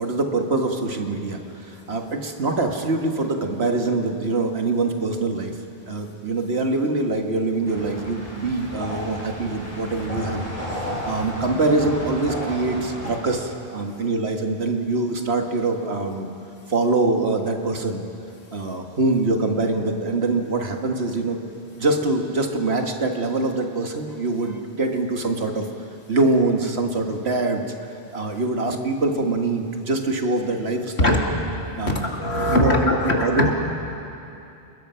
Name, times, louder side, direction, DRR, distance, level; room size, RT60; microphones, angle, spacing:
voice 1, 0.0-5.5 5.9-16.3 16.7-18.0 18.5-21.5 21.8-25.7 26.1-27.7 28.1-31.2 31.8-32.0 32.3-32.7 33.2-33.5, right 2 dB, 75° right, 3 dB, 1.9 m, -24 dB
sound 1, 7.6-13.2, equal, 35° left, 5.4 m, -33 dB
voice 2, 31.9-33.5, left 2 dB, 80° left, 0 dB, 2.8 m, -21 dB
30.0 x 20.5 x 5.7 m, 2.8 s
omnidirectional pair, 1.1 m